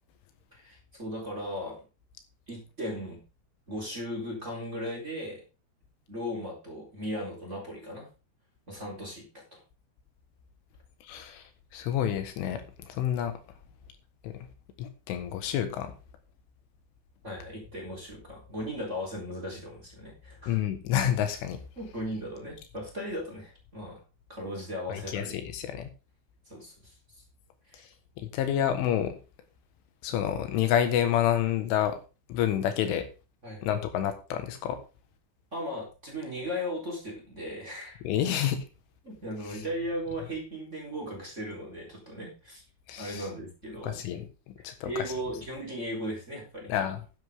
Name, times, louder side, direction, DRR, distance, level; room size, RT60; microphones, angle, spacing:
voice 1, 0.5-1.8 2.5-3.2 3.7-5.4 6.1-8.1 8.7-9.6 17.2-20.6 21.8-24.0 24.3-25.3 26.5-26.9 27.7-27.8 33.4-33.6 35.5-38.0 39.0-42.6 43.0-44.0 44.8-46.8, equal, 15° right, -1 dB, 3.8 m, -37 dB
voice 2, 11.0-11.4 11.7-13.4 14.2-14.5 14.8-15.9 20.5-21.6 24.9-25.9 28.2-29.2 30.0-32.0 32.3-33.1 33.6-34.8 38.0-38.6 42.9-43.3 43.8-45.1 46.7-47.0, left 10 dB, 80° left, 8 dB, 3.9 m, -29 dB
12.0 x 10.5 x 3.6 m, 0.31 s
omnidirectional pair, 5.6 m